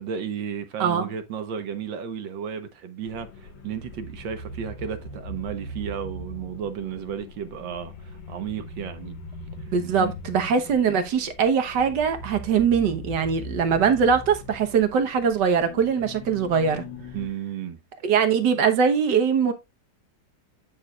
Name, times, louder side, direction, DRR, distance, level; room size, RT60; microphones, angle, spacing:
voice 1, 0.0-9.2 10.0-10.1 17.1-17.8, right 8 dB, 85° right, 1.8 m, -33 dB
sound 1, 3.0-17.3, left 1 dB, 80° left, 1.9 m, -40 dB
voice 2, 9.7-16.8 18.0-19.5, right 6 dB, 70° right, 1.7 m, -22 dB
9.5 x 6.7 x 2.4 m
omnidirectional pair, 2.0 m